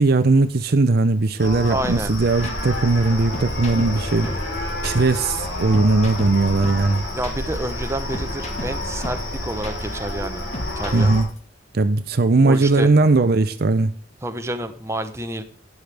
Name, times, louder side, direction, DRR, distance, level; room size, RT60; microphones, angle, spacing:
voice 1, 0.0-4.3 4.8-7.0 10.9-11.3 11.7-13.9, right 3 dB, 55° right, 0.6 m, -18 dB
Mournful Cows, 1.4-11.2, left 1 dB, 70° left, 4.5 m, -29 dB
voice 2, 1.7-2.1 7.1-10.5 10.8-11.1 12.4-12.9 14.2-15.4, right 1 dB, 15° right, 0.9 m, -29 dB
sound 1, 1.8-11.4, left 1 dB, 40° left, 1.8 m, -34 dB
11.5 x 9.5 x 3.4 m
head